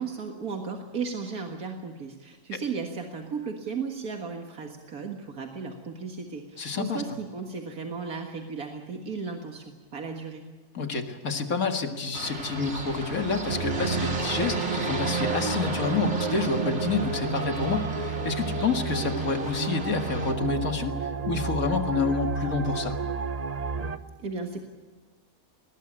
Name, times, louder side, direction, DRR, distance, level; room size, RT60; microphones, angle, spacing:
voice 1, 0.0-10.4 24.2-24.6, right 5 dB, 80° right, 3 dB, 2.2 m, -35 dB
voice 2, 6.6-7.0 10.7-23.0, left 4 dB, 70° left, 6 dB, 2.3 m, -28 dB
sound 1, 12.1-20.3, right 2 dB, 50° right, 2.9 m, -35 dB
sound 2, 13.5-24.0, right 5 dB, 35° right, 0.8 m, -31 dB
21.0 x 19.5 x 8.8 m, 1.4 s
omnidirectional pair, 1.5 m